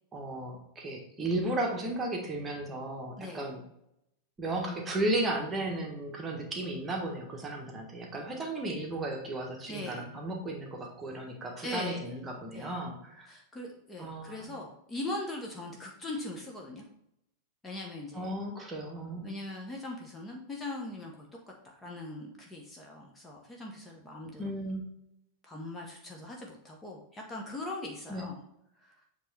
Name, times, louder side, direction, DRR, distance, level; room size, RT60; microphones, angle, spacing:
voice 1, 0.1-3.6 4.4-13.3 14.0-14.5 18.1-19.3 24.2-24.9 28.1-28.3, right 1 dB, 20° right, 1 dB, 1.3 m, -34 dB
voice 2, 9.7-10.0 11.6-12.1 12.5-12.7 13.3-16.8 17.6-18.3 19.2-21.3 21.6-24.5 25.5-28.4 28.8-29.0, left 2 dB, 15° left, 0 dB, 1.0 m, -40 dB
7.7 x 3.1 x 4.1 m, 0.79 s
figure-of-eight pair, 90°, 0 cm